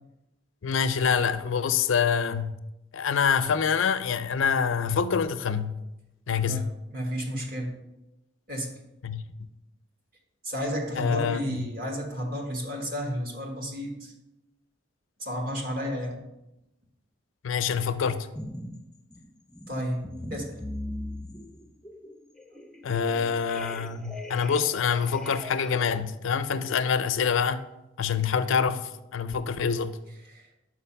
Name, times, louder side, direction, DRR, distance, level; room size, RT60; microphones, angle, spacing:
voice 1, 0.6-2.5 2.9-5.7 6.3-6.7 9.0-9.2 11.0-11.6 17.4-18.3 22.8-27.6 28.0-29.9, left 6 dB, 80° left, 0.5 m, -26 dB
voice 2, 6.4-7.7 8.5-8.7 10.4-14.1 15.2-16.2 19.7-20.6 22.5-22.6 30.3-30.5, equal, 45° right, 1.4 m, -32 dB
sound 1, 18.3-18.8 19.1-26.0, left 1 dB, 5° left, 0.4 m, -40 dB
5.9 x 4.9 x 5.6 m
head